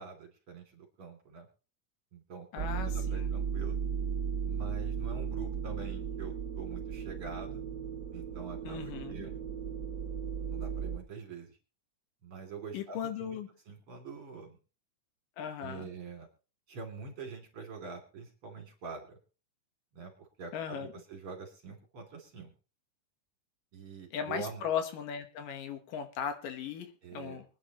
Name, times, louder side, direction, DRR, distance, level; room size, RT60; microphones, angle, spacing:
voice 1, 0.0-1.5 2.1-3.8 4.4-7.7 8.1-9.4 10.5-11.6 12.2-13.4 13.7-14.6 15.6-16.3 16.7-19.2 19.9-22.5 23.7-24.6 27.0-27.4, right 5 dB, 40° right, 3 dB, 3.7 m, -45 dB
voice 2, 2.5-3.3 8.6-9.3 12.7-13.5 15.4-15.9 20.5-20.9 24.1-27.4, left 8 dB, 80° left, 7 dB, 3.0 m, -37 dB
sound 1, 2.6-11.0, right 7 dB, 60° right, 1.1 m, -36 dB
24.0 x 10.0 x 3.1 m, 0.35 s
omnidirectional pair, 3.8 m